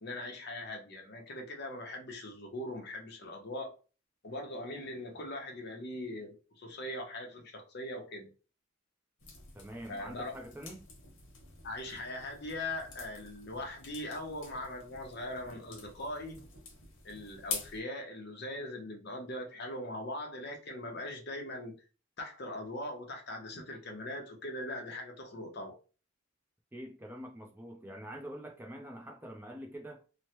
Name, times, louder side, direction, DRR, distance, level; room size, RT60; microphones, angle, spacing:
voice 1, 0.0-3.8 4.2-8.3 9.9-10.3 11.6-16.4 17.0-21.8 22.2-25.8, left 1 dB, 50° left, 0.8 m, -41 dB
sound 1, 9.2-17.8, left 4 dB, 80° left, 1.0 m, -47 dB
voice 2, 9.5-10.9 26.7-30.0, equal, 10° right, 0.4 m, -45 dB
3.0 x 2.1 x 2.9 m
head